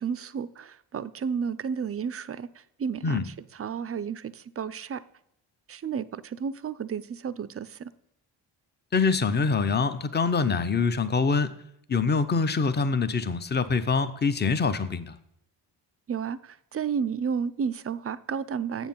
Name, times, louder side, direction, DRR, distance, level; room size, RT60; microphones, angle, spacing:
voice 1, 0.0-2.5 2.8-3.3 3.6-5.0 5.7-7.9 16.1-18.9, right 6 dB, 30° right, 0.4 m, -32 dB
voice 2, 8.9-11.5 11.9-15.2, left 4 dB, 20° left, 0.7 m, -25 dB
7.3 x 7.0 x 5.5 m
supercardioid pair, 50°, 50 cm